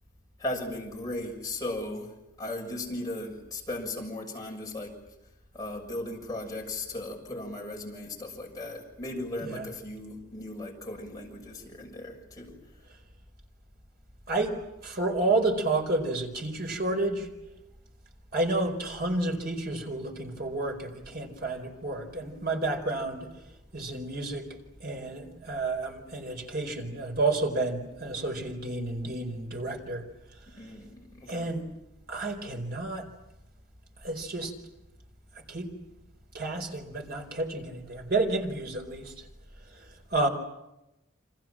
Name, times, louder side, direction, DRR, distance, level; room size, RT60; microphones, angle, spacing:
voice 1, 0.4-2.1 2.4-4.9 5.5-12.5 30.6-31.5, left 1 dB, 15° left, -1 dB, 6.8 m, -37 dB
voice 2, 14.8-17.3 18.3-23.3 23.7-24.5 24.8-30.0 31.3-31.6 32.1-33.1 34.0-34.5 35.5-35.7 36.3-39.1 40.1-40.3, right 2 dB, 45° right, 3 dB, 4.6 m, -30 dB
30.0 x 26.0 x 7.6 m, 0.94 s
head